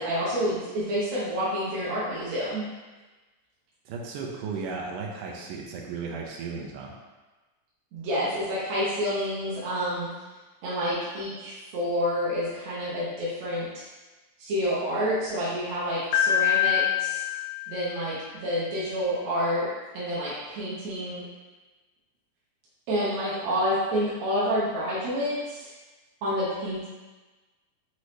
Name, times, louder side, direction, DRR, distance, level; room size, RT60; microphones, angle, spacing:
voice 1, 0.0-2.7 7.9-10.1 10.6-13.9 14.4-17.2 17.7-19.7 19.9-21.3 22.9-25.7 26.2-26.9, equal, 65° right, -10 dB, 2.2 m, -28 dB
voice 2, 3.9-6.9, right 4 dB, 85° right, 0 dB, 2.2 m, -35 dB
Piano, 16.1-18.2, left 12 dB, 80° left, 1.7 m, -25 dB
6.0 x 2.7 x 3.1 m, 1.2 s
omnidirectional pair, 3.7 m